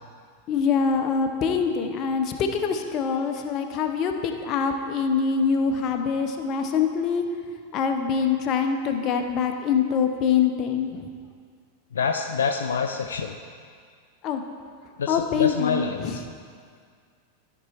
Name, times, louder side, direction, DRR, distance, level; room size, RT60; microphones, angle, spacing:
voice 1, 0.5-7.3 7.7-11.1 14.2-14.4 15.1-16.2, left 6 dB, 35° left, 5 dB, 0.7 m, -24 dB
voice 2, 11.9-13.4 15.0-16.2, left 6 dB, 65° left, 5 dB, 0.4 m, -27 dB
13.5 x 4.6 x 4.3 m, 2.1 s
figure-of-eight pair, 90°, 0 cm